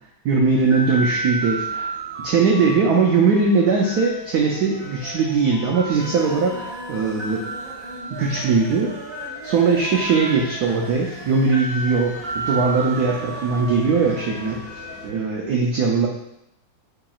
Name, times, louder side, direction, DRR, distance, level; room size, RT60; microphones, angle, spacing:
voice 1, 0.3-1.9 2.2-7.5 8.1-8.9 9.4-14.6 15.0-16.1, right 4 dB, 90° right, -1 dB, 0.8 m, -20 dB
sound 1, 0.6-15.1, right 2 dB, 40° right, 0.9 m, -33 dB
sound 2, 4.1-4.5 4.7-5.3 5.6-14.6 14.9-15.0 15.3-15.4, right 1 dB, 55° right, 2.0 m, -39 dB
6.7 x 2.9 x 2.3 m, 0.80 s
omnidirectional pair, 2.3 m